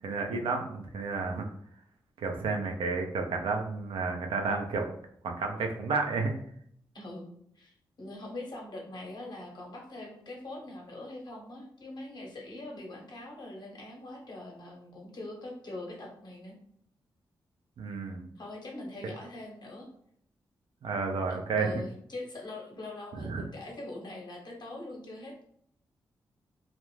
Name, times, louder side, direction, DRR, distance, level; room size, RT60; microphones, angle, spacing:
voice 1, 0.0-1.4 2.2-4.9 5.2-6.3 17.8-18.3 20.8-21.7 23.1-23.4, right 4 dB, 75° right, 3 dB, 0.5 m, -31 dB
voice 2, 6.9-16.6 18.4-19.9 21.3-25.4, left 2 dB, 50° left, 0 dB, 0.9 m, -43 dB
2.4 x 2.0 x 3.1 m, 0.66 s
supercardioid pair, 45°, 9 cm